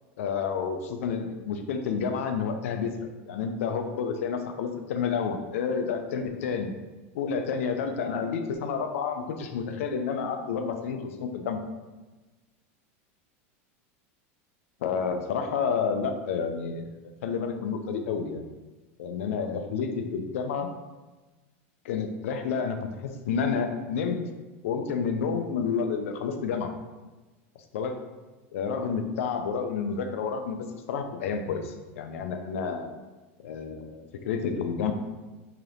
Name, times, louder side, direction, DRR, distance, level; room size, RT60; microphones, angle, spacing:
voice 1, 0.2-6.8 7.1-11.6 14.8-16.9 17.2-18.5 19.0-20.7 21.8-24.3 24.6-26.7 27.7-28.0 28.5-30.6 30.9-32.9 33.4-34.9, left 6 dB, 85° left, 6 dB, 0.4 m, -30 dB
2.8 x 2.4 x 3.3 m, 1.2 s
supercardioid pair, 130°, 7 cm